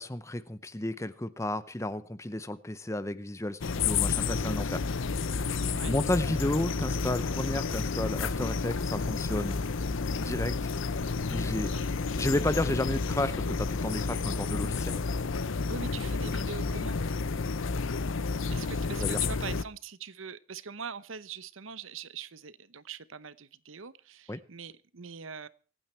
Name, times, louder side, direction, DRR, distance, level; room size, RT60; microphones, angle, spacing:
voice 1, 0.0-4.8 5.8-9.6 10.2-10.5 11.3-11.7 12.2-15.0 19.0-19.2 24.3-24.4, left 1 dB, 15° left, 14 dB, 0.7 m, -32 dB
sound 1, 3.6-19.6, left 4 dB, 75° left, 0.7 m, -30 dB
voice 2, 5.6-6.0 11.6-11.9 15.7-17.0 18.5-25.5, right 6 dB, 80° right, 16 dB, 0.9 m, -42 dB
25.0 x 9.3 x 4.5 m, 0.39 s
head